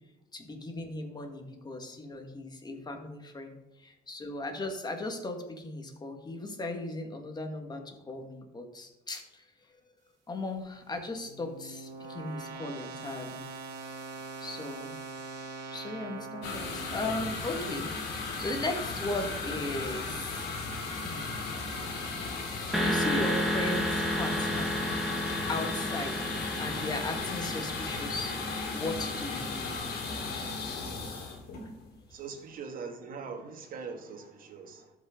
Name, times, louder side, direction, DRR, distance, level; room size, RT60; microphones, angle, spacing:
voice 1, 0.3-9.4 10.3-13.4 14.4-14.9 15.7-20.5 21.0-21.3 22.4-22.5 22.8-24.8 25.5-28.3 28.7-29.7, left 2 dB, 25° left, 4 dB, 1.7 m, -37 dB
sound 1, 10.6-17.7, right 4 dB, 90° right, 1.9 m, -43 dB
sound 2, 16.4-32.1, left 3 dB, 75° left, 2.6 m, -36 dB
sound 3, 22.7-30.5, equal, ahead, 1.7 m, -33 dB
voice 2, 32.1-34.9, right 5 dB, 55° right, 4 dB, 1.7 m, -42 dB
13.0 x 5.5 x 3.8 m, 0.95 s
cardioid pair, 110°, 17 cm